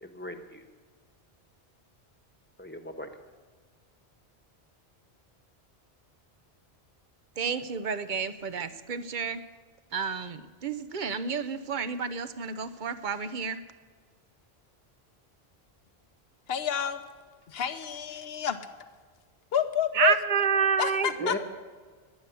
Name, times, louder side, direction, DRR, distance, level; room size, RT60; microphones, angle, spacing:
voice 1, 0.0-0.6 2.6-3.1 21.2-21.4, left 2 dB, 10° left, 6 dB, 1.2 m, -37 dB
voice 2, 7.4-9.4 9.9-13.6 19.9-21.4, right 6 dB, 50° right, 13 dB, 0.9 m, -29 dB
voice 3, 16.5-17.0 17.5-18.7 19.5-20.2 20.8-21.4, left 9 dB, 70° left, 9 dB, 1.1 m, -29 dB
21.5 x 9.3 x 7.0 m, 1.5 s
omnidirectional pair, 1.1 m